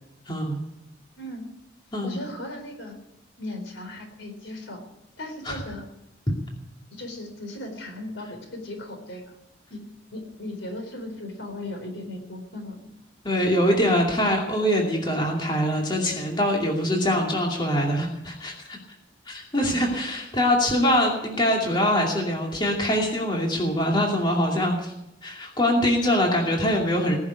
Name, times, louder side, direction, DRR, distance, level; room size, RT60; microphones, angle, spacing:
voice 1, 0.3-0.6 1.9-2.1 5.4-5.6 13.2-18.8 19.3-24.9 25.2-27.2, equal, 25° left, -1 dB, 2.5 m, -23 dB
voice 2, 2.0-3.0 3.4-4.8 5.2-5.9 6.9-9.4 9.7-9.8 10.1-12.9, left 1 dB, 75° left, 4 dB, 4.2 m, -37 dB
20.0 x 7.2 x 9.7 m, 0.87 s
head